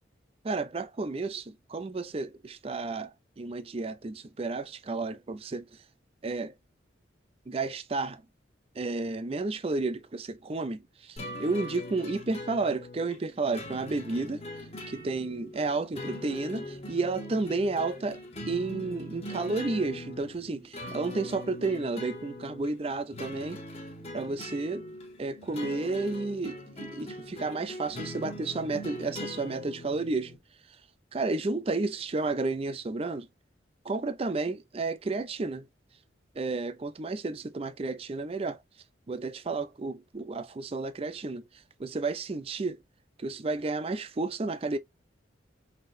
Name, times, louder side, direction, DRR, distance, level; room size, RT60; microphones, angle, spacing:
voice 1, 0.4-3.1 3.4-5.7 6.2-6.5 7.5-8.2 8.8-14.4 14.9-18.2 18.5-23.6 24.1-24.9 25.2-30.3 31.1-33.3 33.8-35.7 36.4-38.6 39.1-41.4 41.8-42.8 43.2-44.8, right 3 dB, 30° right, 0.4 m, -32 dB
sound 1, 11.2-30.4, left 1 dB, 35° left, 1.1 m, -41 dB
5.5 x 2.8 x 2.5 m
head